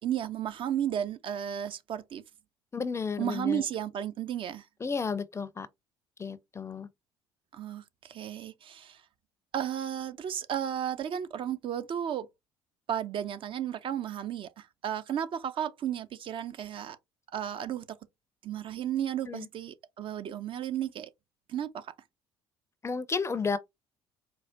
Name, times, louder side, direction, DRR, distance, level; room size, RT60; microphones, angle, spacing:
voice 1, 0.0-2.2 3.2-4.6 7.5-9.0 9.5-12.3 12.9-17.0 17.3-18.0 18.4-21.1 21.5-21.9, right 10 dB, 45° right, 0.4 m, -33 dB
voice 2, 2.7-3.6 4.8-5.7 6.2-6.9 19.2-19.5 22.8-23.6, left 5 dB, 20° left, 0.4 m, -32 dB
4.5 x 2.0 x 2.5 m
hypercardioid pair, 60°, 12 cm